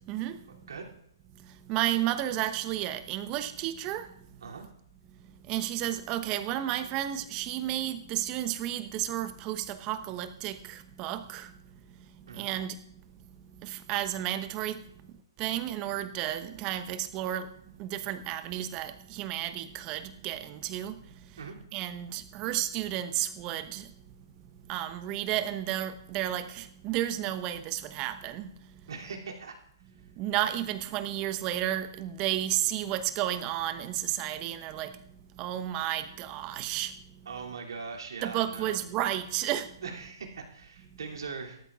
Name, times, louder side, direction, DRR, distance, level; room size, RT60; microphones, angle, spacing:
voice 1, 1.7-4.1 5.5-11.5 12.3-12.8 13.6-14.8 15.4-17.5 17.8-20.9 21.7-23.9 24.7-28.5 30.2-34.9 35.4-36.9 38.2-39.7, right 12 dB, 30° right, 1.0 m, -32 dB
voice 2, 28.9-29.5 37.3-38.8 39.8-41.6, right 5 dB, 70° right, 2.9 m, -40 dB
18.5 x 13.0 x 2.5 m
figure-of-eight pair, 130°, 2 cm